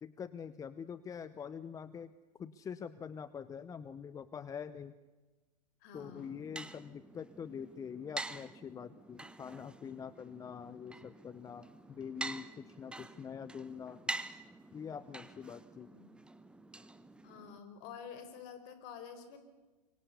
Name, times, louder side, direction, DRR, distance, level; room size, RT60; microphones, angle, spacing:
voice 1, 0.0-2.1 2.4-4.9 5.9-14.0 14.7-15.9, left 7 dB, 15° left, 16 dB, 0.8 m, -45 dB
voice 2, 5.8-6.5 15.8-16.1 17.2-19.4, left 7 dB, 40° left, 10 dB, 4.7 m, -49 dB
sound 1, 6.0-17.6, right 2 dB, 5° right, 1.1 m, -47 dB
27.0 x 24.0 x 6.9 m, 1.2 s
figure-of-eight pair, 105°, 21 cm